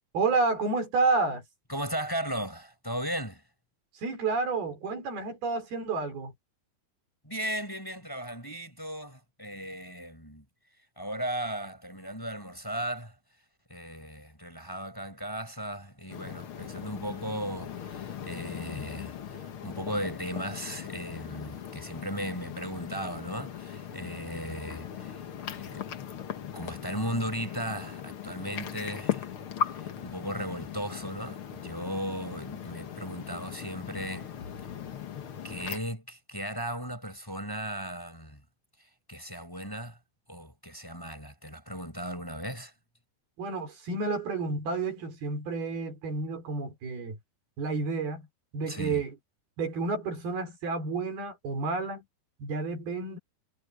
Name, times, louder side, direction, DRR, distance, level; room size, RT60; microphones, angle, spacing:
voice 1, 0.1-1.4 4.0-6.3 43.4-47.2 47.6-48.3 48.5-49.1 49.6-52.0 52.4-53.2, right 3 dB, 75° right, 7.0 m, -30 dB
voice 2, 1.7-3.4 7.2-10.4 11.0-13.1 13.7-25.2 25.5-25.8 26.5-29.3 29.7-34.3 35.4-38.4 39.1-40.0 40.3-42.7 48.6-49.0, equal, 5° left, 6.8 m, -36 dB
sound 1, 16.1-35.8, left 8 dB, 60° left, 1.4 m, -39 dB
omnidirectional pair, 4.4 m